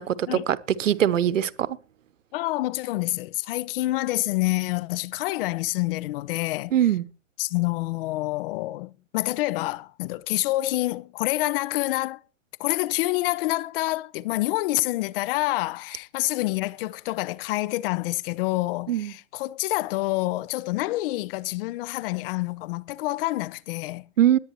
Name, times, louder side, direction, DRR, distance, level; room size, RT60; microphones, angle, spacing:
voice 1, 0.0-1.7 6.7-7.0 18.9-19.1 24.2-24.4, right 10 dB, 75° right, 0.9 m, -22 dB
voice 2, 2.3-6.8 7.4-12.2 12.6-24.1, left 19 dB, 45° left, 0.7 m, -27 dB
20.5 x 9.2 x 3.1 m
figure-of-eight pair, 105°, 38 cm